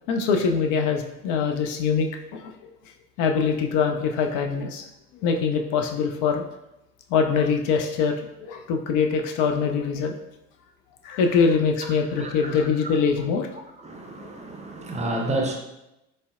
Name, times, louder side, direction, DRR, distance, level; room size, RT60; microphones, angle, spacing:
voice 1, 0.1-2.5 3.2-4.8 5.1-6.4 7.1-8.2 8.4-10.1 11.0-13.5 14.2-14.3, left 5 dB, 60° left, 4 dB, 0.5 m, -23 dB
voice 2, 12.1-12.5 13.8-15.6, right 2 dB, 20° right, 2 dB, 0.5 m, -30 dB
3.8 x 2.0 x 2.4 m, 0.89 s
hypercardioid pair, 60°, 34 cm